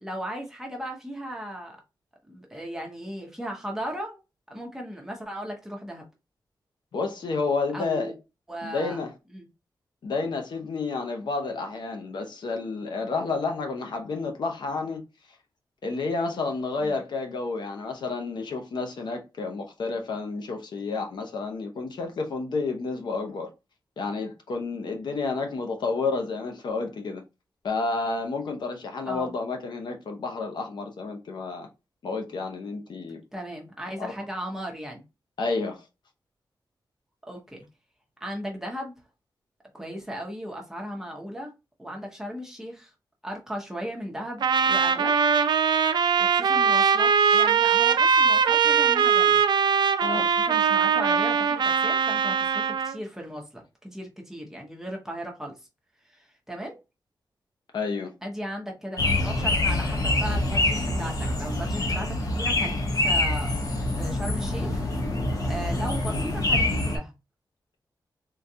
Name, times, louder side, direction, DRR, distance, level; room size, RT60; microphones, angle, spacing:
voice 1, 0.0-1.8 2.3-4.2 4.5-6.0 7.7-8.2 8.5-9.0 9.3-9.5 16.8-17.0 29.1-29.3 33.3-35.0 37.3-37.6 38.2-38.9 39.7-41.5 41.8-42.9 43.2-45.1 46.2-49.4 50.0-55.5 56.1-56.8 58.2-63.6 63.9-64.8 65.5-67.1, equal, 5° right, 0.9 m, -36 dB
voice 2, 6.9-8.1 8.6-9.1 10.0-15.0 15.8-23.5 24.0-27.2 27.6-31.7 32.0-33.2 34.0-34.1 35.4-35.8 50.0-50.3 57.7-58.1, left 3 dB, 75° left, 0.8 m, -30 dB
Trumpet, 44.4-53.0, right 6 dB, 70° right, 0.4 m, -21 dB
sound 1, 59.0-67.0, left 2 dB, 50° left, 0.9 m, -25 dB
3.7 x 2.3 x 2.7 m
wide cardioid pair, 150°, 8 cm